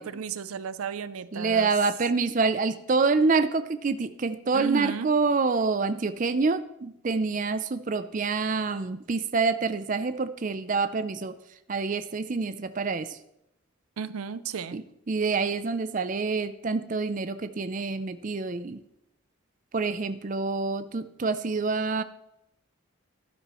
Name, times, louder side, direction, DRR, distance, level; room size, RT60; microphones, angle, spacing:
voice 1, 0.0-1.7 4.5-5.1 14.0-14.8, right 6 dB, 90° right, 15 dB, 0.5 m, -34 dB
voice 2, 1.3-13.2 14.7-18.8 19.7-22.0, right 4 dB, 40° right, 12 dB, 0.4 m, -27 dB
12.0 x 12.0 x 3.1 m, 0.82 s
head